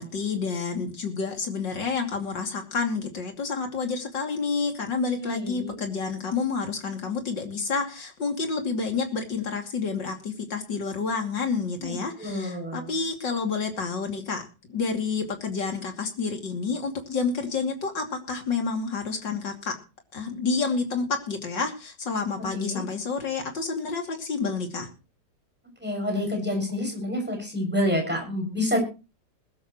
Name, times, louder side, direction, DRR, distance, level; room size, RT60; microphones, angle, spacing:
voice 1, 0.0-19.7 20.1-24.9, left 4 dB, 80° left, 3 dB, 3.4 m, -29 dB
voice 2, 5.2-5.8 11.8-12.9 22.5-22.9 25.8-28.8, left 1 dB, 5° right, 2 dB, 6.6 m, -28 dB
21.5 x 12.5 x 3.1 m, 0.32 s
omnidirectional pair, 1.9 m